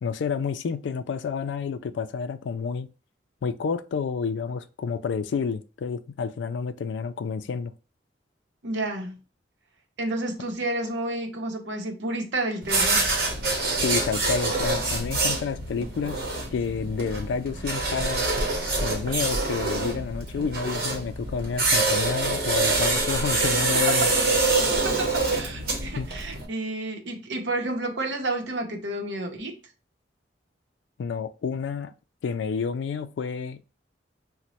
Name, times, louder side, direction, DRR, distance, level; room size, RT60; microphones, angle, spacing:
voice 1, 0.0-2.9 3.4-7.7 13.8-16.2 16.5-18.3 18.8-24.1 26.0-26.1 31.0-31.9 32.2-33.6, left 5 dB, 85° left, 0.3 m, -29 dB
voice 2, 8.6-9.2 10.0-13.1 22.7-23.5 23.7-24.1 24.4-29.6, right 2 dB, 80° right, 0.8 m, -31 dB
sound 1, 12.6-26.4, right 3 dB, 55° right, 1.0 m, -26 dB
3.0 x 2.1 x 4.1 m
head